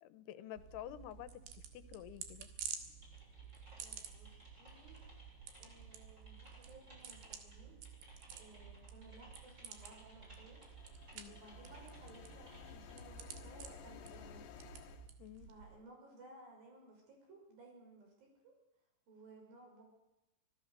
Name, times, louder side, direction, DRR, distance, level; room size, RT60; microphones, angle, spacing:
voice 1, 0.0-2.5 11.1-11.4 15.2-15.5, left 12 dB, 85° left, 13 dB, 3.0 m, -50 dB
sound 1, 0.6-15.8, right 8 dB, 90° right, 3.9 m, -52 dB
Typing, 3.0-12.9, equal, 15° right, 7.3 m, -62 dB
voice 2, 3.8-5.0 5.6-7.8 8.3-10.6 11.3-14.7 15.4-18.6 19.1-19.8, right 2 dB, 60° right, 1 dB, 7.6 m, -59 dB
sound 2, 10.4-15.1, left 10 dB, 70° left, 2.7 m, -55 dB
25.0 x 16.5 x 6.8 m, 0.97 s
omnidirectional pair, 4.6 m